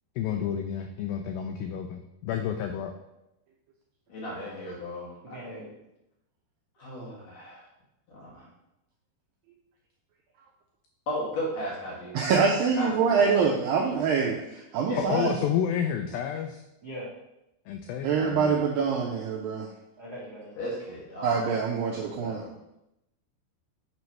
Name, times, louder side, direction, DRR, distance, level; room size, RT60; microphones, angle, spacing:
voice 1, 0.2-2.9 15.0-16.6 17.7-18.6, left 8 dB, 90° left, 5 dB, 2.1 m, -30 dB
voice 2, 4.1-5.7 6.8-7.6 8.1-8.5 11.1-12.2 12.7-13.5 13.9-14.4 14.8-15.2 20.5-21.6 21.9-22.5, equal, 55° left, -5 dB, 2.3 m, -36 dB
voice 3, 5.3-5.7 16.8-17.1 20.0-20.5, equal, 60° right, -9 dB, 1.0 m, -40 dB
voice 4, 12.1-15.3 18.0-19.7 21.2-22.4, right 5 dB, 80° right, 0 dB, 2.0 m, -25 dB
7.9 x 3.1 x 5.6 m, 0.88 s
omnidirectional pair, 4.8 m